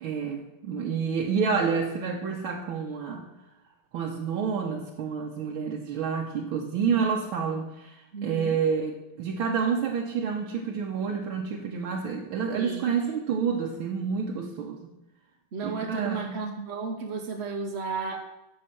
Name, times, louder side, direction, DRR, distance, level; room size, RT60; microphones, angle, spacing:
voice 1, 0.0-3.3 3.9-14.9 15.6-16.4, right 6 dB, 75° right, 0 dB, 1.7 m, -29 dB
voice 2, 8.1-8.6 12.5-13.1 15.5-18.2, right 4 dB, 50° right, 2 dB, 0.8 m, -33 dB
9.8 x 6.9 x 6.8 m, 0.98 s
omnidirectional pair, 2.4 m